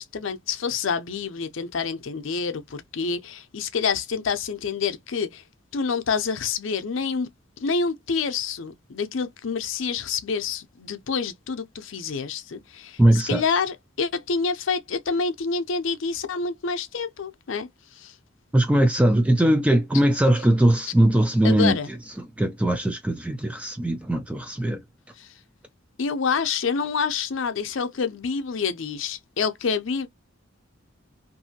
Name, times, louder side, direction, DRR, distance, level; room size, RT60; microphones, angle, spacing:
voice 1, 0.0-5.4 5.7-7.3 7.6-17.7 18.0-18.1 21.4-21.9 25.2-25.3 26.0-30.1, left 5 dB, 70° left, 0.5 m, -27 dB
voice 2, 13.0-13.4 18.5-21.8 22.2-24.8, right 1 dB, 5° right, 0.3 m, -20 dB
2.8 x 2.6 x 2.7 m
head